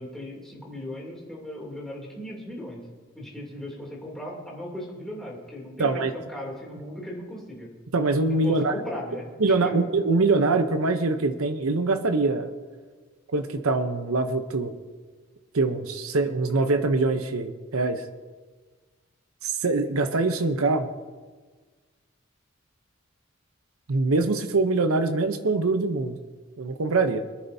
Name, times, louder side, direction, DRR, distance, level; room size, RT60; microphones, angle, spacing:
voice 1, 0.0-2.8 3.1-7.7 8.4-9.7, left 1 dB, ahead, -4 dB, 2.9 m, -37 dB
voice 2, 5.8-6.1 7.9-8.7 9.4-12.5 13.3-14.7 15.5-18.0 19.4-20.9 23.9-26.2 26.6-27.2, right 3 dB, 80° right, 8 dB, 0.8 m, -23 dB
24.0 x 10.5 x 2.7 m, 1.4 s
head